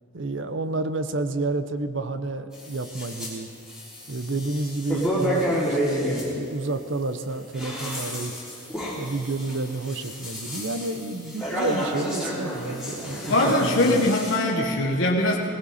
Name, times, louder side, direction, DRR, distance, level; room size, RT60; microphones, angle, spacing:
voice 1, 0.1-3.5 4.1-8.3 9.0-14.1, right 2 dB, 55° right, 10 dB, 0.8 m, -30 dB
sound 1, 2.5-3.3 3.7-6.3 7.3-14.3, equal, 5° right, 3.3 m, -30 dB
voice 2, 13.3-15.4, left 1 dB, 60° left, -2 dB, 1.2 m, -22 dB
19.0 x 17.0 x 4.2 m, 2.5 s
head